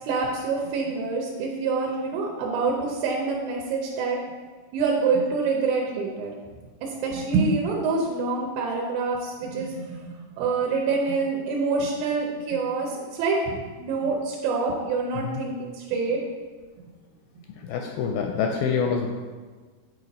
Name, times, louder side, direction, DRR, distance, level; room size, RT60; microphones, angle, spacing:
voice 1, 0.0-4.2 4.7-6.3 6.8-16.2, right 4 dB, 75° right, -1 dB, 2.4 m, -26 dB
voice 2, 17.6-19.1, left 6 dB, 80° left, 2 dB, 2.1 m, -26 dB
8.0 x 4.4 x 4.1 m, 1.4 s
omnidirectional pair, 4.6 m